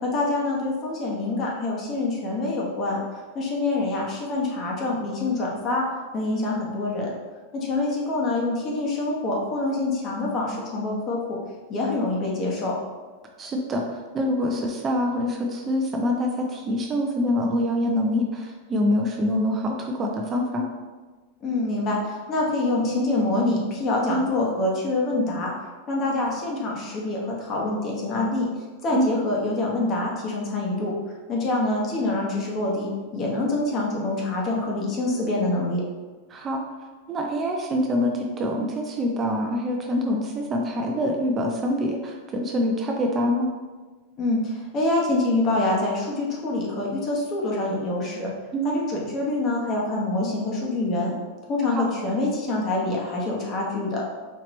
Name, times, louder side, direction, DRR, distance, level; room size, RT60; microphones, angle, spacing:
voice 1, 0.0-3.0 3.3-5.8 6.1-7.1 7.5-11.4 11.7-12.7 21.4-25.5 25.9-28.5 28.8-30.9 31.3-35.8 44.2-48.3 48.6-51.1 51.5-54.0, left 2 dB, 35° left, -2 dB, 1.1 m, -25 dB
voice 2, 13.4-20.6 24.1-24.3 28.9-29.2 36.3-36.6 37.1-43.5 48.5-48.8 51.7-51.9, left 1 dB, 25° right, 1 dB, 0.4 m, -25 dB
4.4 x 2.9 x 3.0 m, 1.3 s
supercardioid pair, 135°, 0 cm